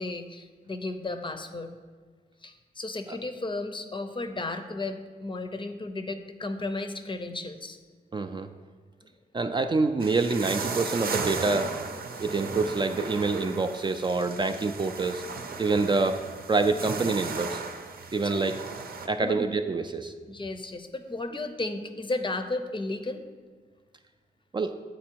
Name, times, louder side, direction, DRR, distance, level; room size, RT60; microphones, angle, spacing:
voice 1, 0.0-1.7 2.4-7.8 18.2-18.5 19.1-19.5 20.3-23.2, left 2 dB, 30° left, 8 dB, 0.6 m, -34 dB
voice 2, 8.1-8.5 9.3-11.7 12.2-15.2 15.6-16.2 16.5-17.6 18.1-18.6 19.0-20.1 24.5-24.8, right 3 dB, 30° right, 7 dB, 0.3 m, -26 dB
sound 1, 10.0-19.1, right 4 dB, 70° right, 0.7 m, -36 dB
8.4 x 4.2 x 4.5 m, 1.5 s
wide cardioid pair, 90°, 16 cm